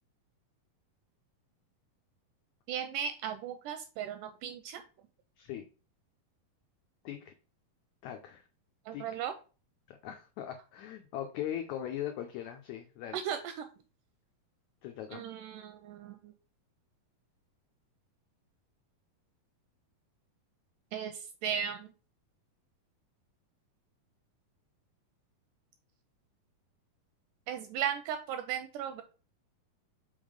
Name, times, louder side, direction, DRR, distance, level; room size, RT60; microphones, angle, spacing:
voice 1, 2.7-4.8 8.9-9.3 13.1-13.7 15.1-16.3 20.9-21.9 27.5-29.0, right 9 dB, 80° right, 8 dB, 1.9 m, -36 dB
voice 2, 8.0-8.4 8.9-9.2 9.9-13.2 14.8-15.2, left 10 dB, 85° left, 5 dB, 1.6 m, -40 dB
5.4 x 3.6 x 5.0 m, 0.35 s
omnidirectional pair, 4.0 m